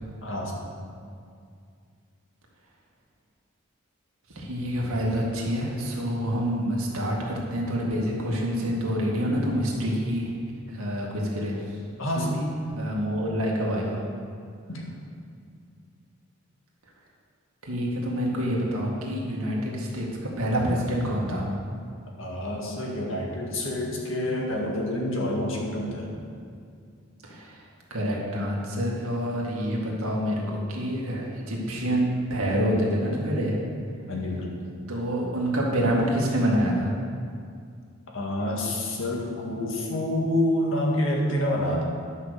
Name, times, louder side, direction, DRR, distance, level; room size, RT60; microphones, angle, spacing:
voice 1, 0.2-0.5 12.0-12.4 14.7-14.9 22.2-26.1 34.1-34.5 38.1-41.8, left 1 dB, 65° left, -1 dB, 1.9 m, -28 dB
voice 2, 4.3-10.3 10.7-11.6 12.2-12.5 12.8-14.0 17.6-21.5 27.2-27.6 27.9-33.6 34.9-36.9, equal, 85° right, -2 dB, 2.1 m, -27 dB
11.0 x 5.8 x 6.6 m, 2.3 s
head